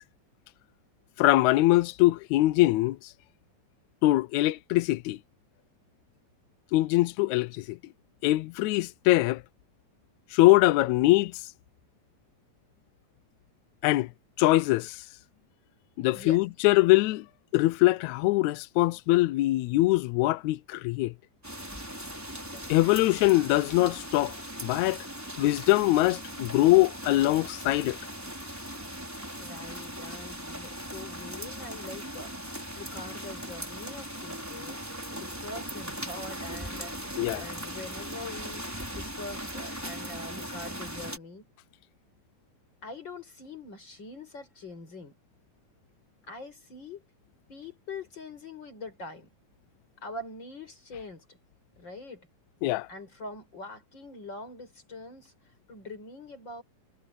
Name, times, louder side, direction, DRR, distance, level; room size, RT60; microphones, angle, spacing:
voice 1, 1.2-3.0 4.0-5.2 6.7-7.8 8.2-9.4 10.3-11.4 13.8-14.1 14.4-15.0 16.0-17.2 17.5-21.1 22.7-25.0 25.4-28.0 37.2-37.5 52.6-52.9, left 18 dB, 85° left, 1.6 m, -23 dB
sound 1, 21.4-41.2, equal, 5° right, 4.7 m, -39 dB
voice 2, 22.5-22.9 29.4-32.3 32.7-34.8 35.1-38.7 38.9-41.5 42.8-45.2 46.3-47.1 47.5-49.3 50.0-51.4 51.8-52.3 52.9-55.3 55.7-56.6, left 2 dB, 30° left, 6.2 m, -43 dB
omnidirectional pair, 4.0 m